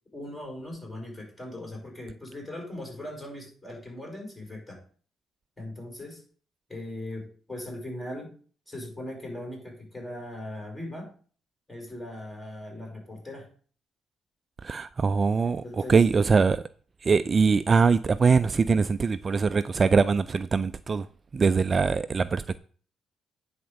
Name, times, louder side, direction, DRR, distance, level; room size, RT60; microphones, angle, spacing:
voice 1, 0.1-4.8 5.6-6.2 6.7-8.3 8.7-11.1 11.7-13.5 15.4-16.0, left 1 dB, 15° left, 5.5 m, -39 dB
voice 2, 14.6-16.6 17.0-21.1 21.3-22.6, right 5 dB, 35° right, 0.4 m, -22 dB
9.9 x 4.3 x 6.5 m
cardioid pair, 90°, 0 cm